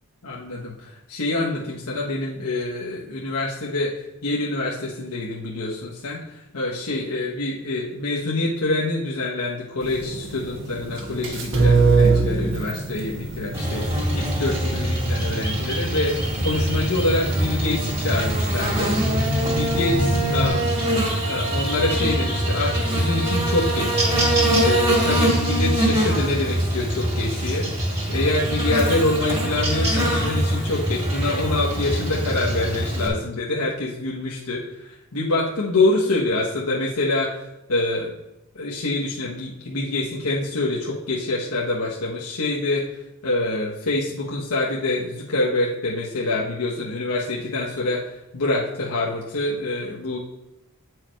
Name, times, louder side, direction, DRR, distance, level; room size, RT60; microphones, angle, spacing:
voice 1, 0.2-13.9 14.1-19.3 19.5-20.8 21.2-24.0 24.6-27.7 28.1-38.1 38.5-42.9 43.2-50.2, left 2 dB, 80° left, -4 dB, 1.2 m, -26 dB
sound 1, 9.8-20.5, right 3 dB, 55° right, 1.3 m, -25 dB
Buzz, 13.5-33.1, right 1 dB, 25° right, 2.1 m, -23 dB
8.8 x 4.8 x 4.6 m, 0.92 s
head